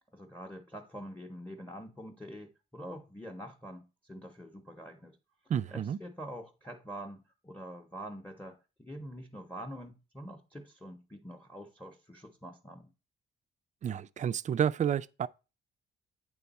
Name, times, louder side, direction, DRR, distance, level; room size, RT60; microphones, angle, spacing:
voice 1, 0.1-5.1 5.7-12.9, equal, 5° left, 0.8 m, -45 dB
voice 2, 5.5-6.0 13.8-15.3, right 9 dB, 40° right, 0.4 m, -30 dB
8.6 x 3.5 x 4.1 m
cardioid pair, 90°, 20 cm